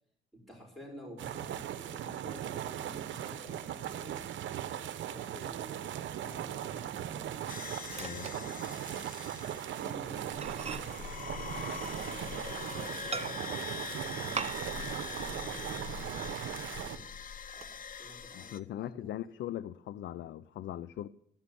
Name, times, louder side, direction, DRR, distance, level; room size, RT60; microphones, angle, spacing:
voice 1, 0.3-4.3 4.7-7.4 8.4-8.9 9.8-14.5 14.8-17.1 17.5-19.2, equal, ahead, 5.7 m, -52 dB
sound 1, 1.2-17.0, right 10 dB, 70° right, 0.9 m, -39 dB
Microwave oven, 6.3-9.2 9.5-9.7 10.1-10.2 10.4-12.5 13.1-13.7 14.3-14.9 15.2-15.3 15.8-16.5 17.0-17.6, right 5 dB, 30° right, 0.9 m, -43 dB
sound 2, 7.5-18.6, left 7 dB, 45° left, 0.9 m, -43 dB
voice 2, 7.9-8.3 18.3-21.1, left 12 dB, 65° left, 0.5 m, -40 dB
14.0 x 6.1 x 9.8 m
cardioid pair, 90°, 20 cm